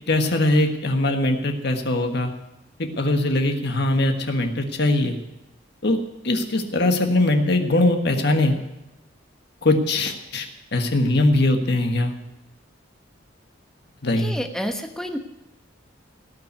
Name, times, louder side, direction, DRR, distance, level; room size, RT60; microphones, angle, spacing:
voice 1, 0.1-2.3 3.0-5.2 5.8-6.0 6.2-8.6 9.6-12.1 14.0-14.3, left 2 dB, 55° left, 5 dB, 1.5 m, -21 dB
voice 2, 14.2-15.2, equal, 5° left, 5 dB, 1.1 m, -29 dB
18.0 x 6.0 x 9.5 m, 0.95 s
head